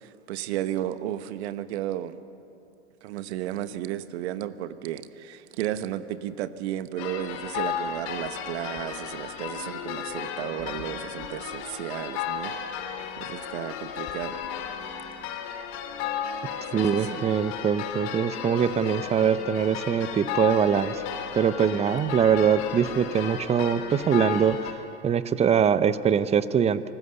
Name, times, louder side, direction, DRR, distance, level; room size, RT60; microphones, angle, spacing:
voice 1, 0.0-2.2 3.0-12.5 13.2-14.3 16.7-17.3, right 12 dB, 60° right, 13 dB, 1.2 m, -33 dB
sound 1, 7.0-24.7, left 8 dB, 50° left, 2.6 m, -34 dB
voice 2, 16.7-21.0 21.3-24.6 25.0-26.9, right 7 dB, 20° right, 15 dB, 0.6 m, -23 dB
25.0 x 19.0 x 6.8 m, 2.8 s
hypercardioid pair, 105°, 36 cm